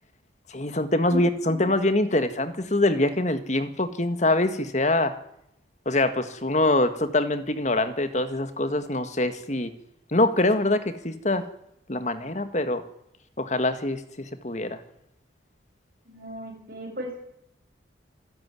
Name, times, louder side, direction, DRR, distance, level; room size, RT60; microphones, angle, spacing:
voice 1, 0.5-5.1 5.9-9.7 10.1-11.5 11.9-12.8 13.4-14.8, left 2 dB, 35° left, 10 dB, 1.8 m, -24 dB
voice 2, 1.1-1.6 16.1-17.3, left 1 dB, 45° right, 0 dB, 7.9 m, -36 dB
26.5 x 11.5 x 9.9 m, 0.77 s
head